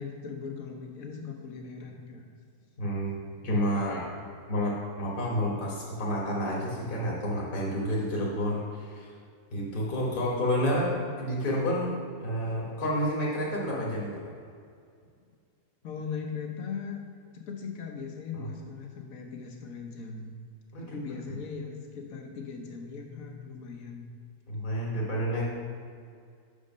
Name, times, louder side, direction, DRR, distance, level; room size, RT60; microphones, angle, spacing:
voice 1, 0.0-2.2 15.8-17.0 17.3-20.3 20.8-24.0, left 5 dB, 65° left, 3 dB, 1.3 m, -39 dB
voice 2, 2.8-4.1 4.5-9.1 9.5-14.3 18.3-18.5 20.7-21.0 24.5-25.4, equal, 40° left, -4 dB, 1.2 m, -30 dB
6.3 x 5.2 x 5.2 m, 2.2 s
omnidirectional pair, 1.6 m